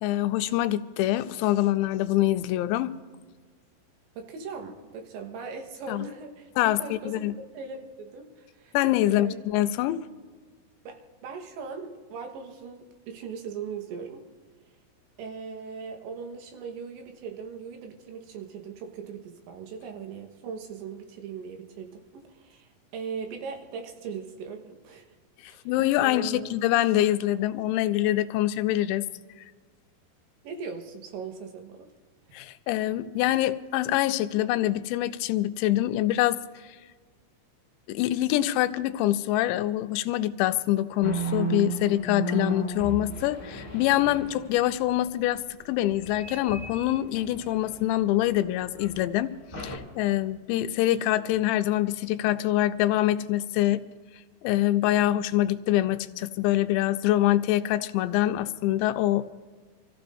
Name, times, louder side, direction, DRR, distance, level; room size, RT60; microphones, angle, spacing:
voice 1, 0.0-2.9 5.9-6.0 6.6-7.3 8.7-10.0 25.4-29.1 29.4-29.5 32.3-36.4 37.9-53.8 54.4-59.2, left 14 dB, 85° left, 9 dB, 2.8 m, -25 dB
voice 2, 4.2-7.2 7.5-8.8 9.1-9.4 10.9-14.2 15.2-25.1 25.5-25.6 26.0-26.5 30.4-31.9, right 5 dB, 80° right, 4 dB, 3.5 m, -39 dB
sound 1, 41.0-44.6 45.9-48.2 48.7-48.9 49.5-49.8, right 3 dB, 10° left, 0.8 m, -34 dB
26.5 x 14.5 x 2.6 m, 1.5 s
omnidirectional pair, 5.2 m